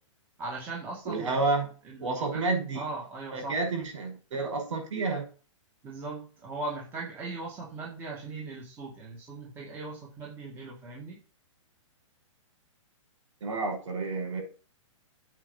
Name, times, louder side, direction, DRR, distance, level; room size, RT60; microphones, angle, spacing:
voice 1, 0.4-1.4 1.9-2.4 2.7-3.5 5.8-11.2, right 3 dB, 15° right, -3 dB, 1.9 m, -39 dB
voice 2, 1.0-1.7 2.0-2.8 3.3-5.3 13.4-14.4, right 3 dB, 70° right, 4 dB, 6.0 m, -30 dB
8.9 x 5.1 x 7.1 m, 0.36 s
hypercardioid pair, 170°, 16 cm